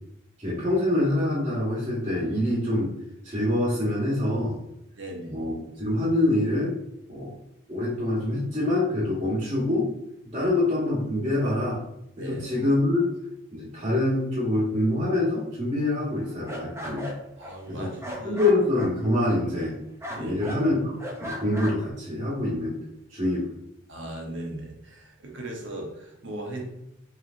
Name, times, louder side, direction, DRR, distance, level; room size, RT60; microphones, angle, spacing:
voice 1, 0.4-2.9 3.2-4.6 5.3-6.7 7.1-7.3 7.7-9.9 10.3-11.8 12.2-13.1 13.5-17.1 17.7-17.9 18.2-19.8 20.1-20.9 21.2-22.8 23.1-23.4, left 1 dB, 30° right, -11 dB, 1.4 m, -25 dB
voice 2, 5.0-5.4 10.3-10.5 12.2-12.4 17.4-18.4 20.2-20.5 23.9-26.6, right 1 dB, 65° right, 0 dB, 1.0 m, -38 dB
sound 1, 16.1-19.7 20.0-20.6 21.0-21.9, equal, 15° right, 0.6 m, -38 dB
5.7 x 3.1 x 2.6 m, 0.82 s
head